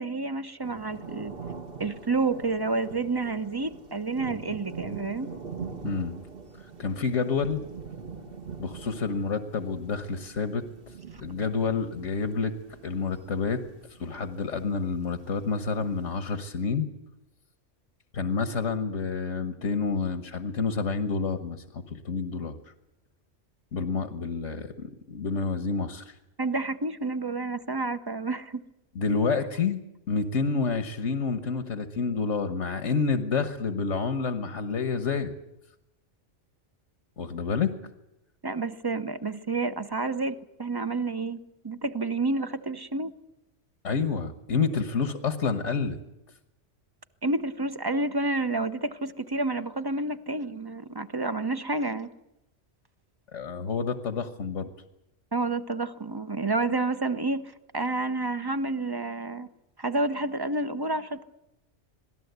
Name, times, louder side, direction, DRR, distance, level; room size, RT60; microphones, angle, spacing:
voice 1, 0.0-1.3 1.8-5.3 26.4-28.6 38.4-41.4 41.6-43.1 47.2-52.1 55.3-57.4 57.7-59.5 59.8-61.2, right 3 dB, 20° right, 11 dB, 0.8 m, -29 dB
sound 1, 0.6-16.4, right 5 dB, 50° right, 1.9 m, -43 dB
voice 2, 5.8-6.2 6.6-7.6 8.6-10.7 11.2-12.5 12.8-13.6 14.0-16.9 18.1-22.6 23.7-26.1 28.9-29.8 30.1-35.3 37.2-37.7 43.8-46.0 53.3-54.7, left 5 dB, 85° left, 8 dB, 1.7 m, -29 dB
26.5 x 18.0 x 8.1 m, 0.89 s
omnidirectional pair, 1.2 m